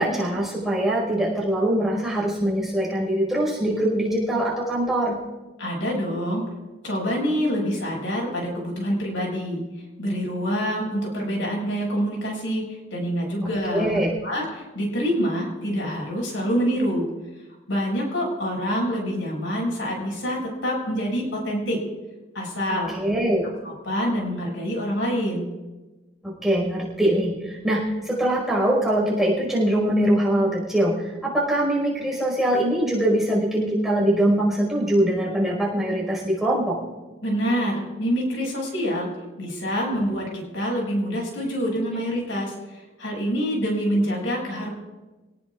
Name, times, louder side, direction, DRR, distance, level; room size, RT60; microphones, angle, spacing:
voice 1, 0.0-5.2 13.4-14.1 22.9-23.4 26.2-36.8, right 1 dB, ahead, -4 dB, 5.0 m, -23 dB
voice 2, 5.6-6.5 6.8-9.6 10.0-17.1 17.7-21.8 22.3-22.9 23.6-25.5 37.2-44.7, equal, 90° left, -1 dB, 6.6 m, -26 dB
27.5 x 18.5 x 2.5 m, 1.2 s
head